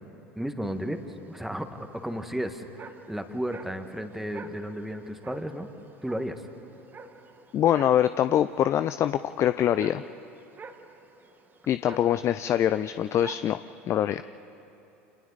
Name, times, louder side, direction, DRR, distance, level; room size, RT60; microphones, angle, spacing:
voice 1, 0.3-1.0 1.3-5.7 6.0-6.4, equal, 5° right, 7 dB, 1.6 m, -33 dB
sound 1, 0.6-13.5, right 4 dB, 30° right, 1.5 m, -48 dB
voice 2, 7.5-10.0 11.7-13.6 13.9-14.2, left 10 dB, 40° left, 12 dB, 0.4 m, -24 dB
29.0 x 26.5 x 4.1 m, 3.0 s
hypercardioid pair, 80°, 7 cm